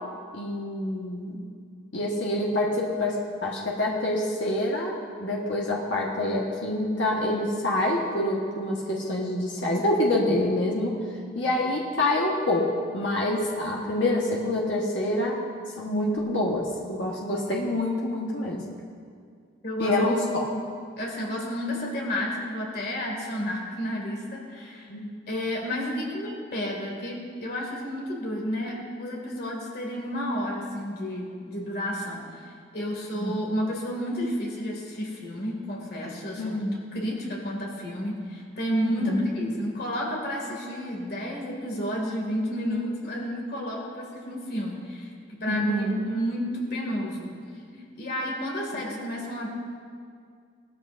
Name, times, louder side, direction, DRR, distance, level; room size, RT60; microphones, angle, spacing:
voice 1, 0.3-1.4 1.9-4.9 5.2-11.0 11.3-15.4 15.7-18.6 19.8-20.4 24.9-25.1 33.1-33.3 36.4-36.7 38.8-39.2 45.5-45.9 48.7-48.8, left 1 dB, 75° left, -3 dB, 1.4 m, -26 dB
voice 2, 19.6-20.2 20.5-20.6 21.0-24.9 25.3-45.1 45.4-45.6 45.9-47.3 47.7-49.5, equal, 55° left, -2 dB, 2.4 m, -31 dB
19.0 x 13.5 x 2.6 m, 2.2 s
head